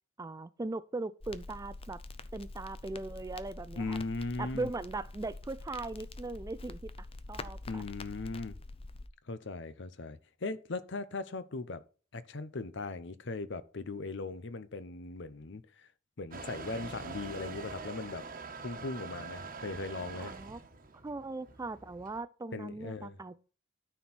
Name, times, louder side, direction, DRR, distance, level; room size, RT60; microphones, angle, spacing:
voice 1, 0.2-2.0 2.3-4.0 4.4-7.8 20.2-20.6 21.0-23.4, right 2 dB, 15° right, 0.4 m, -39 dB
Crackle, 1.2-9.1, left 2 dB, 30° left, 0.6 m, -46 dB
voice 2, 3.8-4.7 7.7-8.6 9.3-11.8 12.1-15.9 16.2-18.2 18.6-20.3 22.5-23.2, left 3 dB, 65° left, 0.8 m, -39 dB
Motor vehicle (road) / Engine starting / Accelerating revving vroom, 16.3-22.2, right 4 dB, 45° right, 1.2 m, -44 dB
13.0 x 4.5 x 4.2 m
head